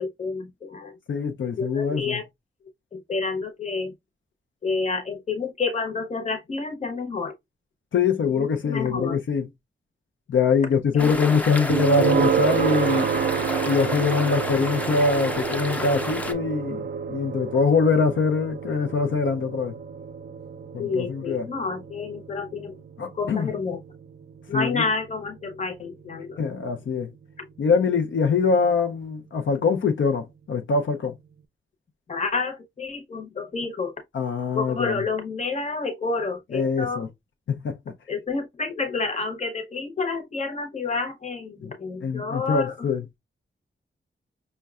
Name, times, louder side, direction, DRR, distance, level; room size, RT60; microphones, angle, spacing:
voice 1, 0.0-1.0 1.6-2.3 2.9-3.9 4.6-7.3 8.3-9.2 10.9-11.1 20.8-22.7 23.1-23.8 24.5-26.4 27.4-27.5 32.1-33.9 34.5-37.0 38.1-42.9, left 4 dB, 35° left, 0.8 m, -29 dB
voice 2, 1.1-2.2 7.9-9.5 10.3-13.1 13.7-19.7 20.7-21.4 23.0-23.5 24.5-24.8 26.4-27.1 27.6-31.1 34.1-35.0 36.5-37.1 37.5-37.8 41.6-41.7 42.0-43.0, left 5 dB, 75° left, 0.5 m, -23 dB
sound 1, 11.0-16.3, left 1 dB, 10° left, 0.5 m, -31 dB
sound 2, 11.7-26.6, right 7 dB, 55° right, 0.4 m, -29 dB
5.4 x 2.2 x 2.3 m
wide cardioid pair, 170°, 20 cm